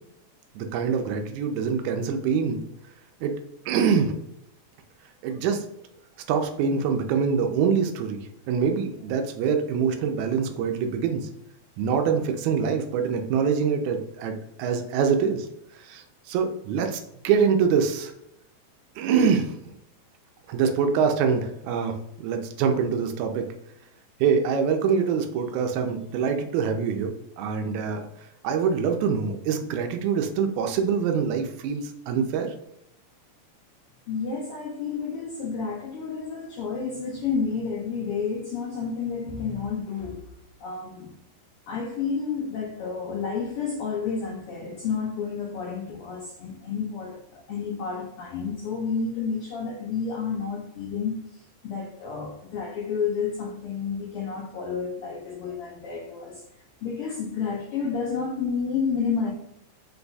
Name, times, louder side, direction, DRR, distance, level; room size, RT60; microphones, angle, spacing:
voice 1, 0.6-2.6 3.2-3.3 3.7-4.1 5.2-5.6 6.3-8.2 8.5-11.3 11.8-15.5 15.8-18.1 19.0-19.5 20.5-23.5 24.2-28.1 28.4-32.5, right 6 dB, 85° right, 5 dB, 1.9 m, -25 dB
voice 2, 34.1-40.2 40.6-41.1 41.7-51.1 51.6-56.4 56.8-59.3, left 5 dB, 85° left, -1 dB, 1.3 m, -30 dB
5.3 x 2.3 x 3.9 m, 0.77 s
omnidirectional pair, 3.3 m